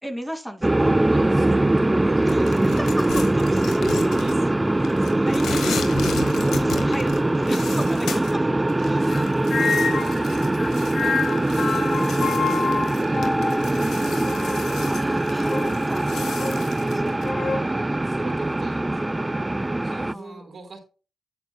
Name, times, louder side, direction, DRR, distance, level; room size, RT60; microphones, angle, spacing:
voice 1, 0.0-1.0 2.2-3.8 5.2-6.0 6.5-8.5 8.8-9.4 10.0-10.5 14.8-17.3 20.0-20.5, equal, 5° left, 5 dB, 2.3 m, -37 dB
sound 1, 0.6-20.1, right 1 dB, 20° right, 0.4 m, -22 dB
voice 2, 1.1-2.5 3.8-4.5 5.1-5.8 6.4-6.6 8.1-10.5 11.0-14.2 17.4-19.0 19.8-20.8, right 4 dB, 60° right, 3 dB, 3.8 m, -42 dB
sound 2, 2.3-4.6 4.8-8.3 8.7-17.3, left 6 dB, 80° left, 1.5 m, -36 dB
sound 3, 9.1-10.2 10.6-13.8 14.2-14.8 15.5-15.9 16.4-16.6 17.2-17.6, left 5 dB, 60° left, 1.7 m, -28 dB
9.9 x 8.9 x 2.2 m, 0.32 s
supercardioid pair, 40°, 0 cm